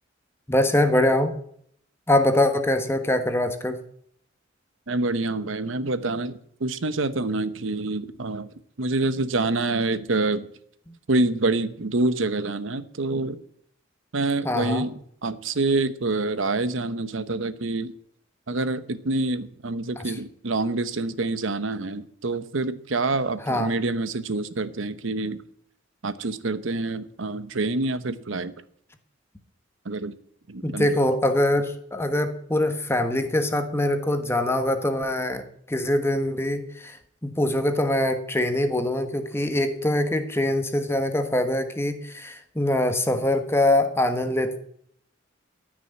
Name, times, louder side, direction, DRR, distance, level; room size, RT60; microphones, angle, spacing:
voice 1, 0.5-1.3 2.1-3.8 14.4-14.8 20.0-20.1 23.5-23.7 30.6-37.0 37.2-44.6, left 1 dB, 15° left, 7 dB, 1.3 m, -23 dB
voice 2, 4.9-8.5 8.8-10.5 11.1-13.4 14.1-14.9 15.2-17.9 18.5-25.4 26.0-28.5 29.8-30.1 30.5-31.0, right 2 dB, 90° right, 13 dB, 0.9 m, -26 dB
14.0 x 6.2 x 9.5 m, 0.65 s
head